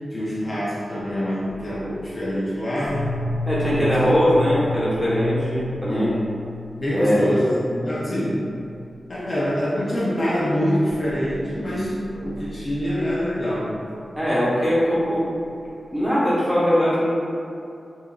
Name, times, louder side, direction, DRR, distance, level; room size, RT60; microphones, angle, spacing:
voice 1, 0.1-3.1 3.7-4.1 5.9-6.2 6.8-8.4 9.1-13.7, equal, 40° left, -8 dB, 0.6 m, -25 dB
sound 1, 1.5-1.9 2.8-7.3 7.6-7.8 8.1-8.4 8.6-8.9 9.6-9.7 10.7-13.9, left 2 dB, 80° left, 0.3 m, -32 dB
voice 2, 3.5-6.1 6.9-7.3 14.2-15.2 15.9-17.1, equal, 5° right, -10 dB, 1.1 m, -20 dB
5.6 x 2.6 x 2.4 m, 2.5 s
wide cardioid pair, 145°, 0 cm